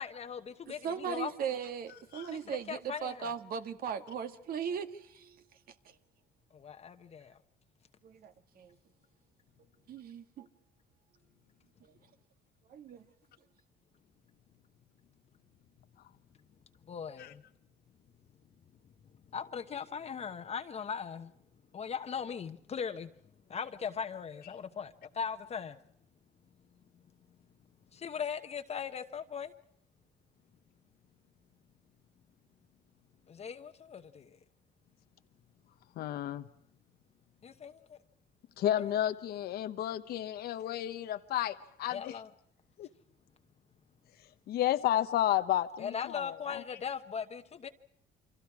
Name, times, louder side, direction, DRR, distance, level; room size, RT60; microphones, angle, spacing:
voice 1, 0.0-1.3 2.3-3.3 6.5-7.3 16.9-17.4 19.3-21.3 21.7-23.1 23.5-25.8 27.9-29.5 33.3-34.2 37.4-38.0 38.8-39.0 41.9-42.3 45.8-47.7, left 7 dB, 40° left, 1.1 m, -39 dB
voice 2, 0.7-5.4 8.0-8.7 9.9-10.5 12.7-13.0, right 7 dB, 60° right, 1.8 m, -38 dB
voice 3, 36.0-36.5 38.6-42.1 42.8-42.9 44.5-46.6, left 12 dB, 65° left, 1.0 m, -32 dB
29.0 x 25.0 x 4.8 m
cardioid pair, 110°, 17 cm